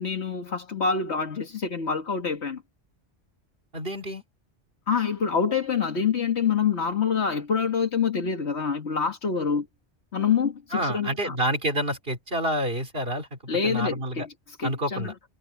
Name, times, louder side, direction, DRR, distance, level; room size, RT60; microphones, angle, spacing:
voice 1, 0.0-2.6 4.9-9.7 10.1-11.4 13.5-14.3 14.6-15.1, left 6 dB, 75° left, 2.0 m, -26 dB
voice 2, 3.7-4.2 10.7-13.4 13.6-14.3 14.6-15.1, right 1 dB, 55° right, 4.4 m, -28 dB
omnidirectional pair, 1.1 m